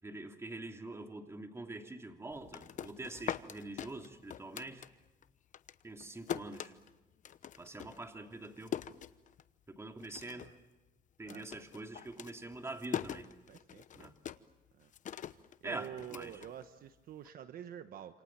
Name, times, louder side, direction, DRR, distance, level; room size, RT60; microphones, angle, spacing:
voice 1, 0.0-4.9 5.8-6.7 7.6-8.8 9.7-10.4 11.2-13.3 14.0-14.1 15.6-16.3, right 2 dB, 15° right, 4 dB, 3.0 m, -45 dB
sound 1, 2.3-5.3 5.5-9.7 10.0-10.6 10.9-17.1, left 9 dB, 50° left, 1.0 m, -43 dB
voice 2, 10.3-10.6 11.2-11.9 13.5-14.1 14.7-14.9 15.2-18.2, right 9 dB, 60° right, 9 dB, 1.3 m, -49 dB
28.0 x 28.0 x 7.5 m, 1.1 s
cardioid pair, 110°, 17 cm